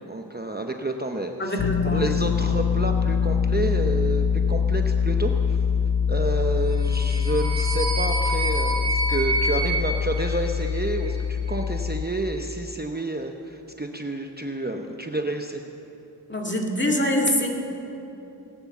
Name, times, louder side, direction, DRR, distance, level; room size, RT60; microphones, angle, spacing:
voice 1, 0.1-1.5 1.9-5.6 6.1-15.6, right 2 dB, 20° right, 3 dB, 0.8 m, -29 dB
voice 2, 1.4-2.1 16.3-17.5, left 1 dB, 25° left, 0 dB, 2.0 m, -24 dB
sound 1, 1.6-12.1, left 7 dB, 60° left, 0.6 m, -24 dB
sound 2, 6.7-11.0, right 2 dB, 10° left, 2.9 m, -28 dB
18.5 x 9.7 x 7.1 m, 3.0 s
wide cardioid pair, 60°, 43 cm